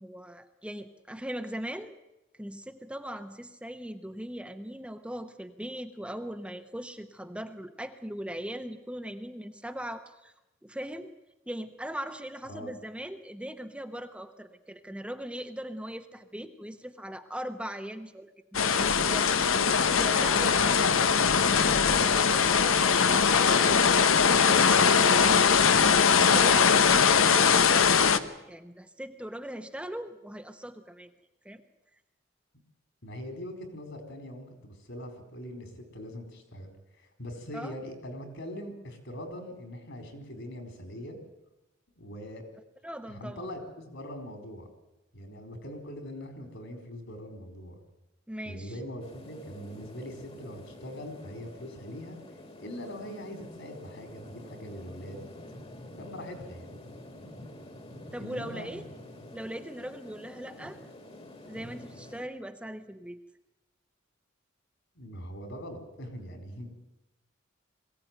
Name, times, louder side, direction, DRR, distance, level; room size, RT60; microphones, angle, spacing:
voice 1, 0.0-1.9 2.4-10.3 10.6-11.1 11.5-23.7 26.3-28.2 28.5-31.1 31.4-31.6 37.5-37.8 42.8-43.5 48.3-48.7 58.1-58.8 59.3-60.8 61.5-63.2, equal, 5° right, 6 dB, 1.0 m, -40 dB
sound 1, 18.5-28.2, left 6 dB, 90° left, 1.0 m, -21 dB
voice 2, 20.3-21.1 24.5-24.9 25.1-25.9 33.0-41.2 42.0-42.4 43.1-44.7 45.1-47.8 48.5-52.2 52.6-55.3 56.0-56.7 58.2-58.7 64.9-66.8, equal, 65° left, 6 dB, 4.6 m, -42 dB
sound 2, 49.0-62.2, left 1 dB, 30° left, 1.9 m, -48 dB
22.0 x 16.0 x 9.2 m, 0.94 s
head